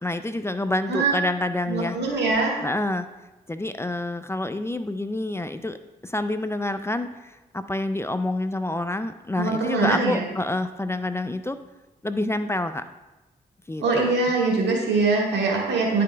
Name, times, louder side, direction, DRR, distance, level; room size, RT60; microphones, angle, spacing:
voice 1, 0.0-2.0 2.6-3.1 3.5-5.8 6.0-11.6 12.0-12.8 13.7-14.1, left 2 dB, 15° left, 10 dB, 0.4 m, -27 dB
voice 2, 1.7-2.5 9.4-10.2 13.8-16.0, right 3 dB, 80° right, -2 dB, 1.7 m, -23 dB
10.5 x 5.1 x 2.3 m, 1.1 s
supercardioid pair, 45°, 18 cm